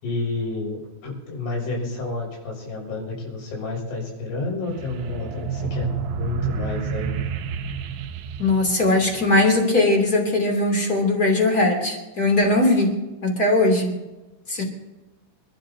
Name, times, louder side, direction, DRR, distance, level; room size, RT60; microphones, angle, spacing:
voice 1, 0.0-7.3, left 3 dB, 75° left, -2 dB, 8.7 m, -30 dB
sound 1, 4.6-9.6, right 7 dB, 75° right, 3.1 m, -30 dB
voice 2, 8.4-13.9 14.5-14.6, left 2 dB, 25° left, 1 dB, 2.7 m, -20 dB
29.0 x 13.5 x 2.8 m, 1.1 s
omnidirectional pair, 5.5 m